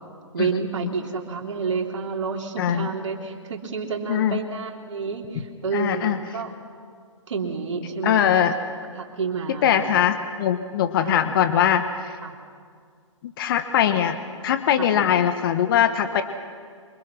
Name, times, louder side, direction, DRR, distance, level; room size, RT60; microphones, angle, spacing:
voice 1, 0.3-6.5 7.3-8.3 9.0-9.9 11.0-11.2 12.2-12.3 14.8-14.9, right 5 dB, 65° right, 1 dB, 3.4 m, -29 dB
voice 2, 2.6-2.9 4.1-4.4 5.7-6.2 8.0-8.5 9.6-12.1 13.4-14.2 14.4-16.2, left 9 dB, 40° left, 9 dB, 1.2 m, -21 dB
27.0 x 24.5 x 6.1 m, 2.1 s
figure-of-eight pair, 130°, 17 cm